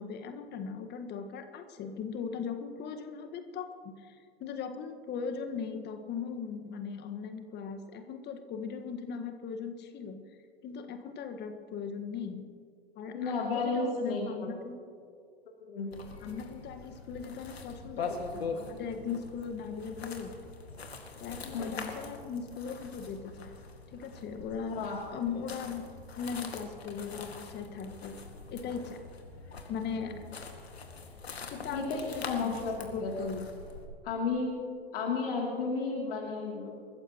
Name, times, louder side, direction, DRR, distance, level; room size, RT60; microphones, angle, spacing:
voice 1, 0.0-10.2 10.6-12.5 13.0-14.8 16.2-20.3 21.2-23.5 23.9-24.8 25.1-25.9 26.1-28.2 28.5-29.0 29.7-30.2 31.5-33.5, left 6 dB, 35° left, 7 dB, 1.7 m, -39 dB
voice 2, 13.1-14.5 15.7-15.9 21.5-21.7 24.7-25.0 30.0-30.1 31.7-33.1 34.0-34.5 34.9-36.7, left 4 dB, 65° left, -2 dB, 3.1 m, -33 dB
sound 1, 15.9-33.9, left 4 dB, 80° left, 2.1 m, -43 dB
28.5 x 14.5 x 3.1 m, 2.2 s
figure-of-eight pair, 95°, 31 cm